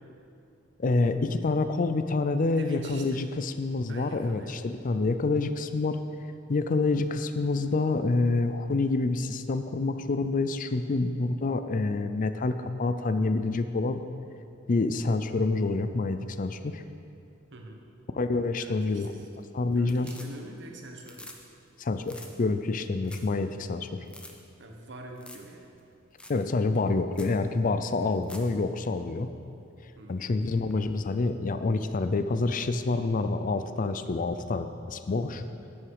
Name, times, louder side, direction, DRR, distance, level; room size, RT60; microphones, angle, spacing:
voice 1, 0.8-6.0 6.5-14.0 14.7-16.8 18.1-19.3 19.5-20.1 21.8-24.0 26.3-29.3 30.1-35.4, left 3 dB, 40° left, 10 dB, 0.4 m, -27 dB
voice 2, 2.5-3.3 3.9-4.5 17.5-17.8 18.6-21.3 24.6-25.7 30.0-30.6, right 1 dB, 65° right, 2 dB, 1.3 m, -44 dB
sound 1, 18.9-19.4 19.7-20.6 20.9-21.4 21.7-21.8 22.0-22.3 22.7-22.8 23.0-23.3 23.6-23.7 24.1-24.3 25.2-25.5 25.8-25.9 26.2-26.4 26.8-26.9 27.1-27.4 28.0-28.5 30.7-30.8, left 1 dB, 5° left, 0.8 m, -47 dB
11.0 x 8.8 x 4.9 m, 2.5 s
head